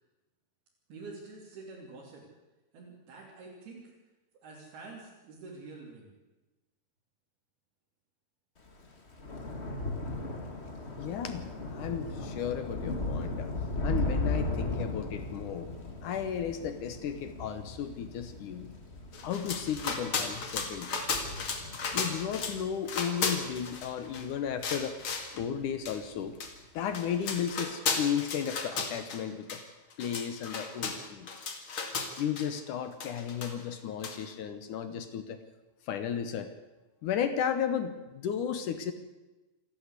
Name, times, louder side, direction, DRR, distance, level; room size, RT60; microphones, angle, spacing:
voice 1, 0.9-2.2 2.7-3.9 4.4-6.1, right 3 dB, 85° right, -4 dB, 5.0 m, -47 dB
Thunder / Rain, 8.7-25.2 25.6-26.0 26.3-26.5, left 2 dB, 25° left, 1.4 m, -37 dB
voice 2, 11.0-13.5 13.8-15.7 16.0-18.7 19.2-21.0 21.9-25.0 25.3-26.4 26.7-29.6 30.0-31.3 32.2-35.4 35.9-36.5 37.0-38.9, left 8 dB, 65° left, 10 dB, 2.3 m, -34 dB
sound 1, 19.1-22.6 22.9-24.3 24.6-25.3 25.9-26.0 26.4-26.5 26.9-29.2 29.5-29.6 29.9-32.5 33.0-33.7 34.0-34.2, left 5 dB, 40° left, 2.3 m, -35 dB
27.5 x 11.5 x 8.2 m, 1.1 s
omnidirectional pair, 4.4 m